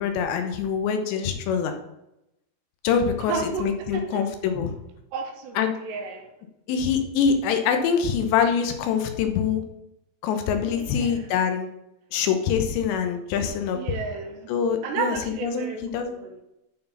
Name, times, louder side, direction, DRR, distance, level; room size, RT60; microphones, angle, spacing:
voice 1, 0.0-1.7 2.8-4.7 5.6-5.7 6.7-9.6 10.2-11.7 12.1-13.8 14.5-15.2 15.4-16.2, left 7 dB, 85° left, 6 dB, 3.2 m, -24 dB
voice 2, 3.3-4.2 5.1-6.3 10.8-11.3 13.7-14.5 14.8-16.4, right 5 dB, 80° right, 3 dB, 3.3 m, -32 dB
10.0 x 4.5 x 5.8 m, 0.87 s
omnidirectional pair, 4.9 m